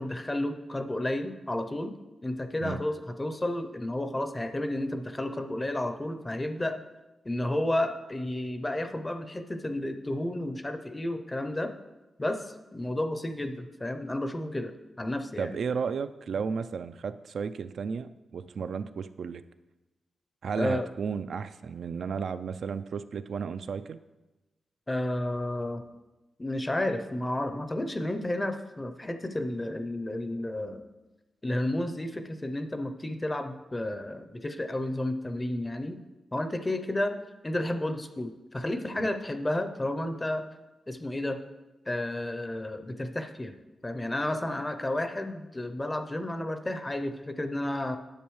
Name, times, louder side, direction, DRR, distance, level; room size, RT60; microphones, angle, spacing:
voice 1, 0.0-1.9 2.2-6.8 7.2-11.7 12.2-15.6 20.6-20.9 24.9-25.9 26.4-30.9 31.4-36.0 36.3-37.1 37.4-40.4 40.9-41.4 41.9-43.6 43.8-48.0, left 1 dB, 15° left, 8 dB, 0.5 m, -31 dB
voice 2, 15.4-19.4 20.4-24.0 39.0-39.1, right 6 dB, 70° right, 11 dB, 0.3 m, -33 dB
10.0 x 7.4 x 3.1 m, 1.1 s
wide cardioid pair, 125°, 0 cm